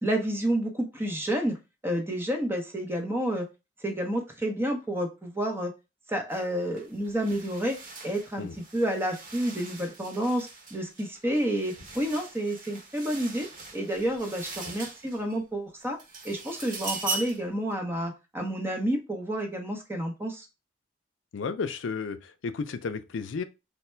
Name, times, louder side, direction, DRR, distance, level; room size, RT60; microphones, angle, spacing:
voice 1, 0.0-1.6 1.8-3.5 3.8-5.7 6.1-8.5 8.7-13.5 13.7-16.0 16.2-20.5, right 1 dB, 10° right, 0.7 m, -30 dB
sound 1, 6.3-6.5 6.8-15.4 15.8-17.5, right 3 dB, 45° right, 1.0 m, -40 dB
voice 2, 21.3-23.4, left 5 dB, 75° left, 0.4 m, -33 dB
3.4 x 2.1 x 4.3 m
head